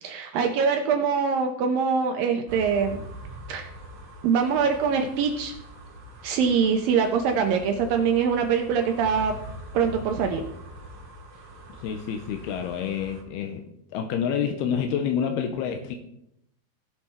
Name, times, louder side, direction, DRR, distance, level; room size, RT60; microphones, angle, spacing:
voice 1, 0.0-3.0 3.5-3.7 4.2-5.5 6.2-9.4 9.7-10.4, right 6 dB, 75° right, 4 dB, 2.2 m, -23 dB
sound 1, 2.5-13.2, equal, 45° right, 2.8 m, -43 dB
voice 2, 11.8-13.6 13.9-16.0, left 7 dB, 85° left, 6 dB, 2.6 m, -28 dB
16.0 x 5.8 x 4.4 m, 0.77 s
omnidirectional pair, 4.7 m